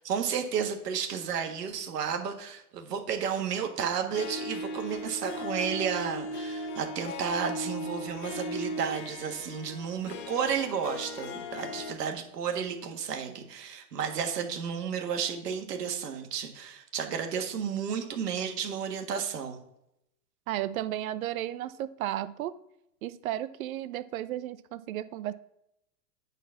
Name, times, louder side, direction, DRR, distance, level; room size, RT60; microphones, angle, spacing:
voice 1, 0.0-19.6, right 7 dB, 75° right, 4 dB, 1.7 m, -32 dB
Harp, 4.1-11.9, left 1 dB, 45° left, 1.2 m, -37 dB
voice 2, 20.5-22.5 23.0-25.3, right 13 dB, 60° right, 14 dB, 0.6 m, -34 dB
9.1 x 4.1 x 5.8 m, 0.82 s
hypercardioid pair, 125°, 48 cm